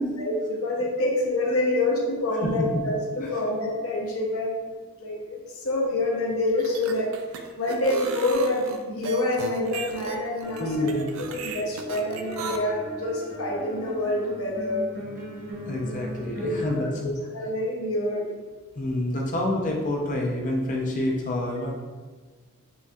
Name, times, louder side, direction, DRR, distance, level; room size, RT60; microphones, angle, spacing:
voice 1, 0.2-4.6 5.0-14.9 15.7-15.8 16.4-18.3, left 1 dB, 75° left, -3 dB, 0.8 m, -27 dB
sound 1, 6.5-12.6, right 5 dB, 65° right, 0.3 m, -36 dB
sound 2, 10.4-16.7, equal, 35° right, 0.8 m, -39 dB
voice 2, 10.6-11.1 15.5-17.1 18.8-21.7, left 1 dB, 35° left, -1 dB, 0.5 m, -28 dB
5.0 x 2.6 x 2.3 m, 1.4 s
head